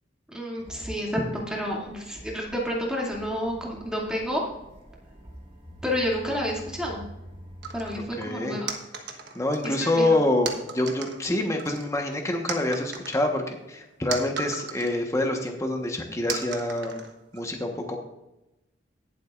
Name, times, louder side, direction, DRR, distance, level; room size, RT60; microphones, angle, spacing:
voice 1, 0.3-4.4 5.8-7.0 7.7-8.7 9.6-10.2, equal, 5° right, -3 dB, 2.4 m, -30 dB
sound 1, 0.6-8.1, equal, 30° right, 1.9 m, -46 dB
sound 2, 7.6-8.0 8.7-9.8 10.5-11.2 11.6-12.1 12.5-15.0 15.4-15.5 16.3-17.4, right 6 dB, 65° right, 1.3 m, -36 dB
voice 2, 7.9-8.6 9.3-10.5 10.7-17.0 17.3-18.0, left 1 dB, 15° left, 2 dB, 1.2 m, -26 dB
19.5 x 7.7 x 2.5 m, 0.96 s
head